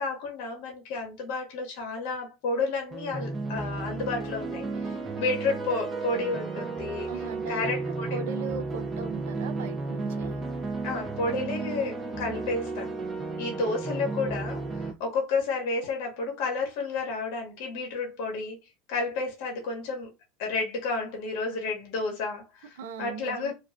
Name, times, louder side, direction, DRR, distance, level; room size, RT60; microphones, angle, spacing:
voice 1, 0.0-7.1 7.5-8.2 10.8-12.9 13.4-18.6 18.9-20.1 20.4-23.5, left 3 dB, 70° left, 0.8 m, -31 dB
sound 1, 2.9-14.9, right 3 dB, 25° right, 0.5 m, -33 dB
voice 2, 7.1-7.7 8.1-10.4 22.8-23.5, right 5 dB, 85° right, 0.3 m, -38 dB
2.3 x 2.3 x 2.4 m
supercardioid pair, 105°, 0 cm